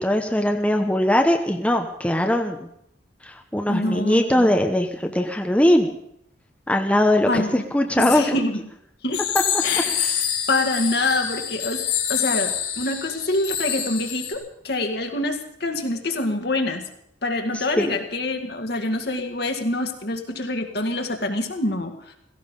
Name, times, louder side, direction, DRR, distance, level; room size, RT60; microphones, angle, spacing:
voice 1, 0.0-2.7 3.2-5.9 6.7-8.4 10.0-10.2 17.8-17.9, left 1 dB, 5° left, 3 dB, 0.9 m, -21 dB
voice 2, 3.7-4.5 7.3-7.6 8.0-8.6 9.0-9.2 9.6-10.0 10.5-11.8 12.1-16.9 17.2-22.2, left 2 dB, 60° left, 4 dB, 2.0 m, -26 dB
sound 1, 9.1-14.3, left 9 dB, 75° left, 3.9 m, -26 dB
16.5 x 15.5 x 5.3 m, 0.73 s
head